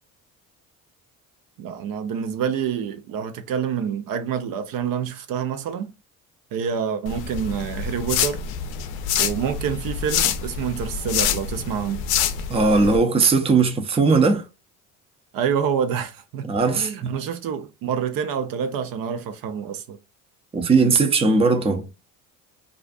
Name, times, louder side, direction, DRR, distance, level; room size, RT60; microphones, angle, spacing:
voice 1, 1.6-5.9 6.5-8.4 9.2-12.0 15.3-16.5 16.7-20.0, right 7 dB, 60° right, 0.6 m, -27 dB
sound 1, 7.1-13.0, left 8 dB, 65° left, 0.5 m, -26 dB
voice 2, 12.5-14.4 16.5-17.2 20.5-21.9, right 4 dB, 15° right, 0.5 m, -19 dB
2.5 x 2.4 x 2.3 m
supercardioid pair, 70°, 40 cm